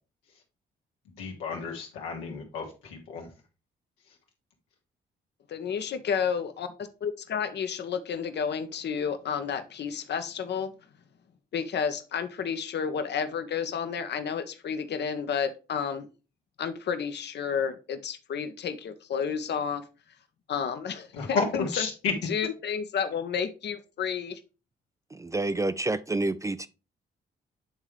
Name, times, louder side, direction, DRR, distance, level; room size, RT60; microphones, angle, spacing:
voice 1, 1.1-3.3 21.1-22.1, left 5 dB, 90° left, 1.4 m, -32 dB
voice 2, 5.5-6.7 7.0-10.7 11.5-16.1 16.6-19.8 20.5-21.9 22.3-24.4, left 7 dB, 55° left, 0.8 m, -31 dB
voice 3, 25.1-26.7, right 2 dB, 15° right, 0.4 m, -28 dB
8.8 x 3.6 x 3.2 m
hypercardioid pair, 50°, 21 cm